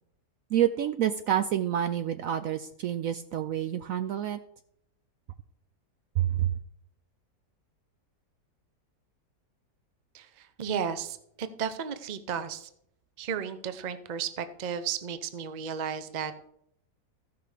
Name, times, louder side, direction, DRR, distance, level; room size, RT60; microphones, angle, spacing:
voice 1, 0.5-4.4 6.2-6.5, right 11 dB, 70° right, 10 dB, 0.8 m, -28 dB
voice 2, 10.1-12.7 13.2-16.5, right 7 dB, 45° right, 10 dB, 0.6 m, -34 dB
14.5 x 5.8 x 4.9 m, 0.72 s
omnidirectional pair, 1.8 m